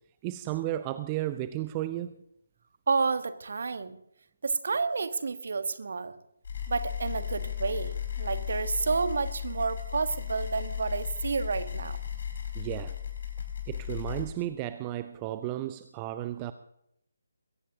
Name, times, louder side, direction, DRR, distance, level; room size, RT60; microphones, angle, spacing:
voice 1, 0.2-2.1 12.5-13.0 13.7-16.5, right 14 dB, 20° right, 12 dB, 0.5 m, -33 dB
voice 2, 2.9-4.0 4.4-6.2 6.7-12.0, right 4 dB, 50° right, 12 dB, 1.2 m, -30 dB
sound 1, 6.4-14.3, left 9 dB, 45° left, 5.1 m, -35 dB
22.0 x 17.0 x 2.8 m, 0.77 s
figure-of-eight pair, 150°, 0 cm